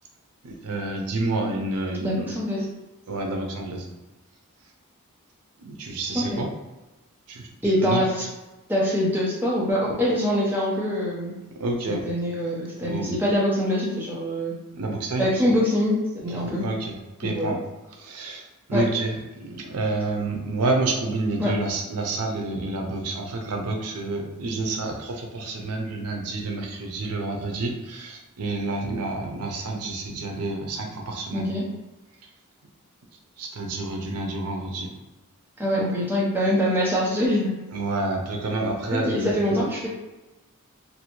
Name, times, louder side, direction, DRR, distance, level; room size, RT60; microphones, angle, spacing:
voice 1, 0.4-2.3 3.1-3.8 5.6-6.5 7.3-7.5 7.8-8.0 11.6-12.0 12.8-13.1 14.8-15.2 16.4-17.6 18.0-18.4 18.7-31.5 33.4-34.9 37.7-39.6, right 2 dB, 90° right, 1 dB, 0.5 m, -29 dB
voice 2, 2.0-2.7 6.1-6.4 7.6-8.3 8.7-11.3 11.9-14.5 15.2-16.0 16.2-16.6 17.2-17.6 18.7-18.8 21.4-21.5 31.3-31.6 35.6-37.6 38.9-39.9, equal, 10° right, -5 dB, 0.6 m, -24 dB
2.6 x 2.1 x 2.9 m, 1.1 s
head